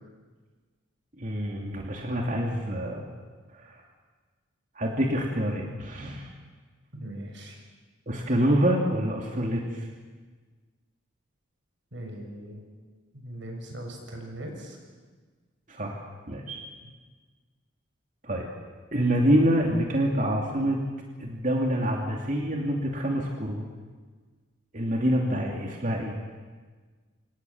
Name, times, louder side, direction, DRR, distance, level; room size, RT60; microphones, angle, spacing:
voice 1, 1.2-3.1 3.5-3.8 4.8-6.3 8.1-9.9 15.7-16.6 18.2-18.5 18.9-20.8 21.2-23.6 24.7-26.2, equal, 40° right, 0 dB, 2.8 m, -26 dB
voice 2, 6.9-7.6 11.9-12.7 13.1-14.8 16.3-16.4 16.8-16.9, right 1 dB, 65° right, 2 dB, 6.7 m, -40 dB
27.5 x 27.0 x 7.3 m, 1.4 s
head